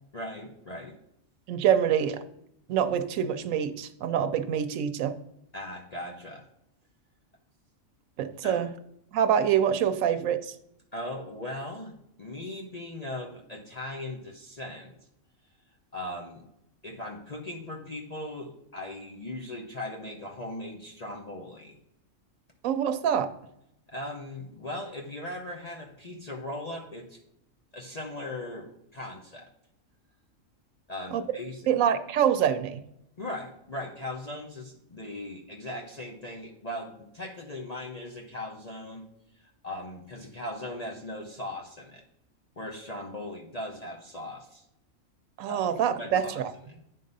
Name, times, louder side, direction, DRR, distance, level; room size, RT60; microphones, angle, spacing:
voice 1, 0.1-1.0 5.5-6.4 8.4-8.6 10.9-11.9 12.2-14.9 15.9-16.4 16.8-21.8 23.9-27.2 27.7-29.5 30.9-31.7 33.2-39.1 39.3-42.0 42.6-44.6 45.5-45.7 46.0-46.4 46.7-46.8, left 1 dB, 35° left, -1 dB, 0.8 m, -38 dB
voice 2, 1.5-2.2 2.7-5.2 8.2-8.7 9.1-10.5 22.6-23.3 31.1-31.2 31.7-32.8 45.4-46.4, right 9 dB, 80° right, 9 dB, 1.0 m, -25 dB
9.4 x 3.7 x 5.3 m, 0.78 s
omnidirectional pair, 1.4 m